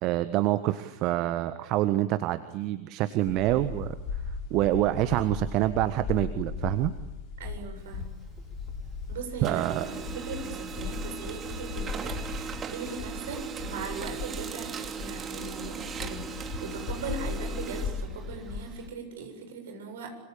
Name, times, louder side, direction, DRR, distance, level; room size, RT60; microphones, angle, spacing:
voice 1, 0.0-4.0 4.5-6.9 9.4-9.8, right 15 dB, 40° right, 11 dB, 1.4 m, -26 dB
sound 1, 3.2-18.9, left 5 dB, 40° left, 4.0 m, -38 dB
voice 2, 7.4-8.1 9.1-20.2, right 4 dB, 60° right, 5 dB, 7.6 m, -39 dB
Printer, 7.8-9.0 9.3-18.9, right 7 dB, 20° right, 2.8 m, -39 dB
26.0 x 26.0 x 8.5 m, 0.99 s
figure-of-eight pair, 90°, 0 cm